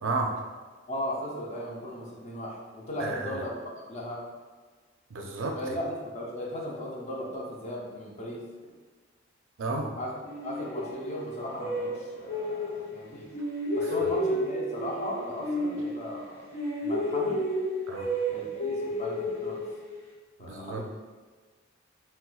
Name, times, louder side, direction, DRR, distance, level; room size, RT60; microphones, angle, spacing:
voice 1, 0.0-0.4 3.0-3.5 5.1-5.7 9.6-9.9 13.8-14.1 17.9-18.1 20.4-20.9, right 3 dB, 70° right, 2 dB, 0.4 m, -32 dB
voice 2, 0.9-4.2 5.6-8.4 10.0-10.1 10.4-13.3 13.8-16.5 16.8-17.4 18.3-19.6 20.4-20.9, equal, 35° left, -3 dB, 0.6 m, -37 dB
sound 1, 10.3-13.0 13.3-16.3 16.5-20.1, equal, 80° left, 1.1 m, -31 dB
4.0 x 2.1 x 2.3 m, 1.4 s
head